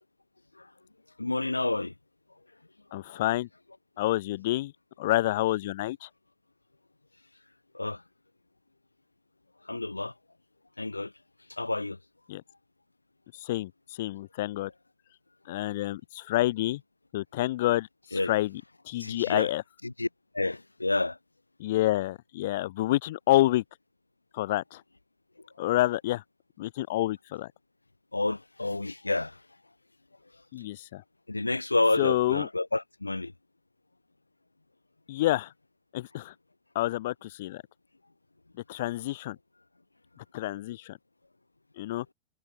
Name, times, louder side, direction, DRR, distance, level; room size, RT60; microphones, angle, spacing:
voice 1, 1.2-1.9 2.9-3.2 7.7-8.0 9.6-10.1 10.8-11.1 11.5-12.0 18.1-18.3 19.0-19.5 19.8-20.1 20.3-21.2 28.1-29.4 31.3-33.3, left 2 dB, 85° left, 3.4 m, -29 dB
voice 2, 2.9-3.5 4.0-4.7 5.0-6.1 12.3-12.4 13.4-13.7 14.0-14.7 15.5-16.8 17.1-17.9 18.3-18.5 18.9-19.6 21.6-23.6 24.3-24.8 25.6-26.2 26.6-27.5 30.5-31.0 32.0-32.5 35.1-35.5 35.9-36.3 36.7-37.6 38.7-39.4 40.3-41.0 41.8-42.0, left 16 dB, 55° left, 3.2 m, -28 dB
figure-of-eight pair, 90°, 0 cm